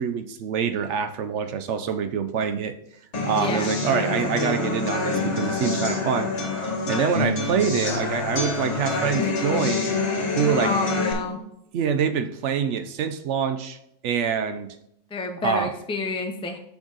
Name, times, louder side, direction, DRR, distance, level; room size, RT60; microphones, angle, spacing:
voice 1, 0.0-2.7 3.2-6.3 6.9-9.9 10.3-10.7 11.7-13.8 14.0-14.8 15.4-15.7, right 7 dB, 65° right, 10 dB, 0.8 m, -25 dB
sound 1, 3.1-11.1, left 3 dB, 50° left, 1.6 m, -26 dB
voice 2, 3.4-3.7 10.6-11.4 15.1-16.6, left 3 dB, 5° left, 3 dB, 0.4 m, -28 dB
6.2 x 6.1 x 3.9 m, 0.77 s
omnidirectional pair, 1.6 m